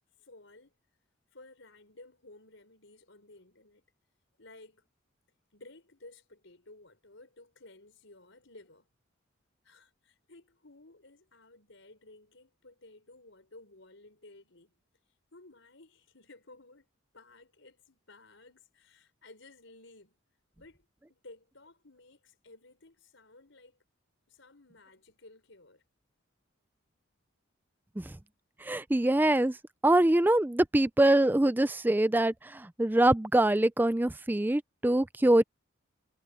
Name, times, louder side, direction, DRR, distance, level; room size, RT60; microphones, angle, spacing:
voice 1, 0.2-0.7 1.3-3.8 4.4-4.9 5.5-8.9 9.6-14.7 15.3-16.9 17.1-20.2 20.6-23.8 24.3-25.8, left 2 dB, 70° left, 4.9 m, -55 dB
voice 2, 28.6-29.6 29.8-35.4, right 1 dB, 10° right, 0.4 m, -24 dB
head